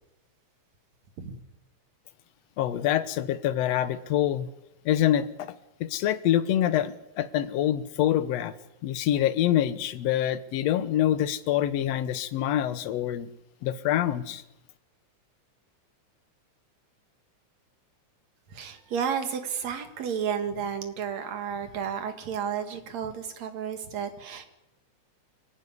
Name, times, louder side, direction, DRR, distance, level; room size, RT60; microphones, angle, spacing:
voice 1, 2.6-4.5 4.9-5.5 5.8-8.5 8.8-13.3 13.6-14.4, left 11 dB, 70° left, 13 dB, 2.0 m, -26 dB
voice 2, 18.5-24.5, right 7 dB, 65° right, 7 dB, 3.1 m, -32 dB
25.0 x 14.5 x 9.8 m, 0.92 s
omnidirectional pair, 3.4 m